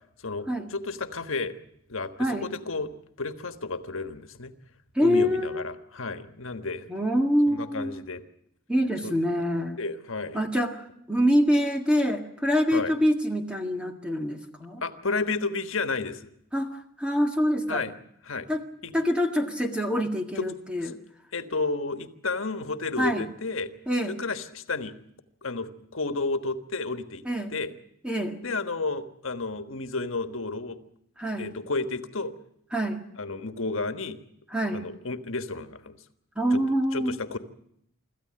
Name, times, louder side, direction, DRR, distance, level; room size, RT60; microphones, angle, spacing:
voice 1, 0.2-1.5 1.9-2.9 3.2-4.5 5.0-6.9 7.5-8.2 9.0-9.1 9.8-10.4 12.7-12.9 14.8-16.3 17.7-17.9 18.2-18.5 18.8-18.9 20.8-20.9 21.3-23.7 24.1-24.9 25.4-27.2 27.5-27.7 28.4-30.8 31.4-32.3 33.2-34.2 34.7-36.0 36.5-36.6 36.9-37.4, left 3 dB, 80° left, 9 dB, 1.4 m, -32 dB
voice 2, 5.0-5.6 6.9-7.9 8.7-9.8 10.3-10.8 11.1-14.8 16.5-16.7 17.0-17.9 18.5-18.6 18.9-21.0 23.0-23.2 23.9-24.2 27.3-27.5 28.0-28.4 31.2-31.5 32.7-33.0 34.5-34.8 36.4-37.2, equal, 5° right, 4 dB, 1.8 m, -25 dB
26.0 x 14.0 x 8.8 m, 0.74 s
head